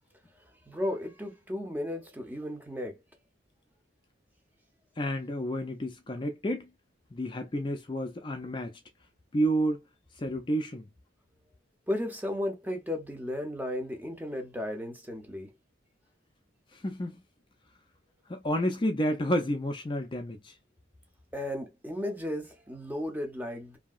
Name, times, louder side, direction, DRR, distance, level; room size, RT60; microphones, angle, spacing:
voice 1, 0.3-3.0 11.9-15.5 21.3-23.8, left 1 dB, 10° right, 0.7 m, -34 dB
voice 2, 5.0-6.7 7.1-8.8 9.3-9.8 10.2-10.9 16.7-17.2 18.3-20.5, equal, 25° left, 0.4 m, -30 dB
2.8 x 2.7 x 2.4 m
head